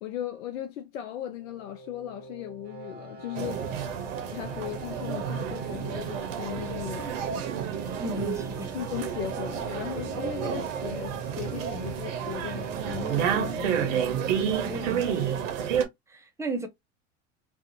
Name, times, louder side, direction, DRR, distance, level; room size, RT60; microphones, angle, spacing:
voice 1, 0.0-3.9 4.3-7.2 8.7-14.0, left 11 dB, 80° left, 0.5 m, -37 dB
sound 1, 1.2-14.2, right 3 dB, 25° right, 1.3 m, -44 dB
sound 2, 3.3-15.8, right 8 dB, 70° right, 0.7 m, -30 dB
voice 2, 8.0-8.7 14.6-15.2 16.1-16.7, right 1 dB, 10° right, 0.5 m, -35 dB
2.4 x 2.4 x 2.6 m
hypercardioid pair, 85°, 39 cm